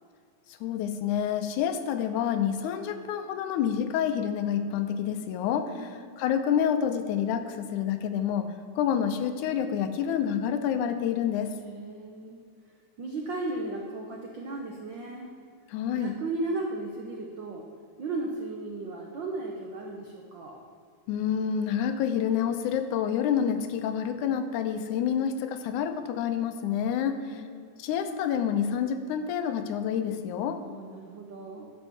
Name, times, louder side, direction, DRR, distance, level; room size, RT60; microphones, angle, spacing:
voice 1, 0.6-11.5 15.7-16.2 21.1-27.4 27.8-30.6, left 8 dB, 85° left, 8 dB, 2.2 m, -28 dB
voice 2, 5.7-6.3 11.7-12.4 13.0-15.3 15.9-17.6 18.0-20.6 27.0-27.7 30.6-31.7, right 2 dB, 85° right, 0 dB, 1.0 m, -36 dB
11.0 x 5.4 x 7.2 m, 2.2 s
omnidirectional pair, 3.5 m